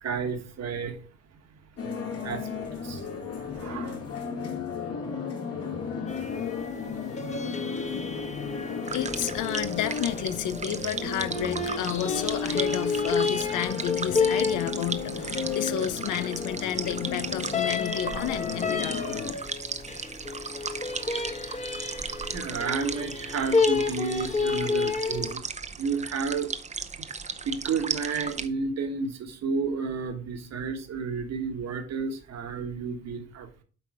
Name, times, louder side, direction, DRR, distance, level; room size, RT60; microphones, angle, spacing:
voice 1, 0.0-1.0 2.2-4.0 22.3-25.4 25.8-26.5 27.4-33.5, right 5 dB, 60° right, 1.4 m, -31 dB
sound 1, 1.8-19.3, left 5 dB, 50° left, 1.9 m, -34 dB
sound 2, 6.1-25.3, left 4 dB, 25° left, 1.1 m, -31 dB
melting snow, 8.8-28.5, right 5 dB, 25° right, 0.7 m, -36 dB
voice 2, 8.9-19.1, left 11 dB, 80° left, 0.7 m, -31 dB
7.9 x 4.1 x 4.9 m
cardioid pair, 90°, 30 cm